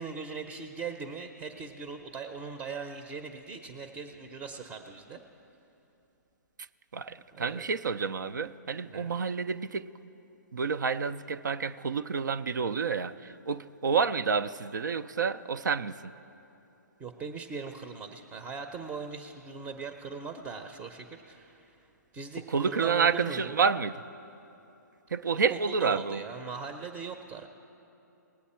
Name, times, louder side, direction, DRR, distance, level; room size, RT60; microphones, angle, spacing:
voice 1, 0.0-5.2 7.3-7.6 8.9-9.1 17.0-21.8 22.1-23.6 25.3-27.5, right 5 dB, 20° right, 7 dB, 0.6 m, -40 dB
voice 2, 6.9-9.9 10.5-16.1 22.5-24.0 25.1-26.2, right 5 dB, 80° right, 11 dB, 0.4 m, -29 dB
19.5 x 8.3 x 4.3 m, 2.8 s
hypercardioid pair, 135°, 10 cm